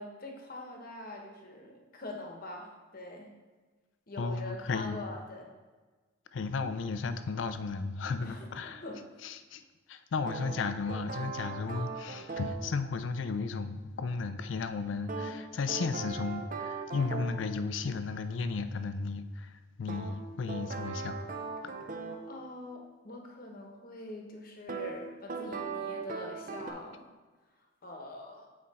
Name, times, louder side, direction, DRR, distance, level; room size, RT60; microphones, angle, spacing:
voice 1, 0.0-3.3 4.1-5.5 8.2-9.1 22.3-27.1 27.8-28.5, left 2 dB, 50° left, 2 dB, 1.0 m, -44 dB
voice 2, 4.2-5.0 6.3-8.8 9.2-9.6 9.9-19.5 19.8-21.2, left 4 dB, 80° left, 11 dB, 0.4 m, -34 dB
sound 1, 10.3-12.6 15.1-17.5 19.9-22.2 24.7-24.9 25.3-26.7, right 4 dB, 45° right, 0.6 m, -38 dB
7.5 x 4.3 x 4.1 m, 1.3 s
head